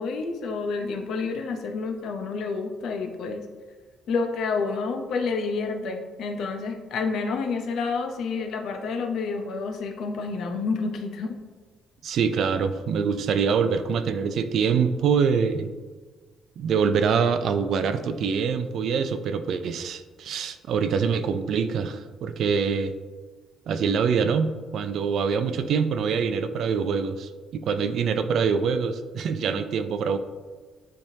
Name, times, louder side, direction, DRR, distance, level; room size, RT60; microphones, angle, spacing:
voice 1, 0.0-3.4 4.1-11.4, left 4 dB, 60° left, 5 dB, 0.6 m, -29 dB
voice 2, 12.0-15.7 16.6-22.9 23.7-30.2, right 6 dB, 55° right, 10 dB, 0.4 m, -25 dB
9.9 x 3.5 x 2.7 m, 1.4 s
cardioid pair, 170°, 0 cm